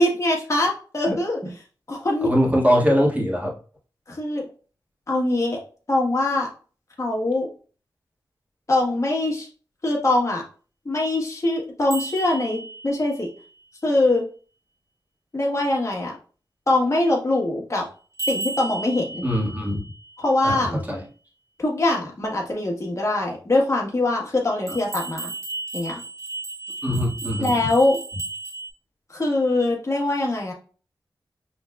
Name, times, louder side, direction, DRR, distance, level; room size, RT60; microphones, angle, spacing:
voice 1, 0.0-1.4 1.9-2.3 4.1-4.5 5.1-5.6 5.9-6.5 7.0-7.5 8.7-9.5 9.8-10.4 10.8-13.3 13.8-14.2 15.3-16.1 16.7-17.8 18.3-19.3 20.2-20.7 21.6-25.3 25.7-26.0 27.4-28.0 29.1-30.5, left 2 dB, 40° left, -2 dB, 1.4 m, -22 dB
voice 2, 2.2-3.5 19.2-19.8 20.4-21.0 24.7-24.8 26.8-27.5, equal, 20° right, -3 dB, 1.7 m, -22 dB
sound 1, 11.9-13.3 18.1-20.1 24.7-28.7, right 2 dB, 40° right, 1.7 m, -34 dB
5.5 x 3.3 x 2.3 m, 0.38 s
wide cardioid pair, 65°, 8 cm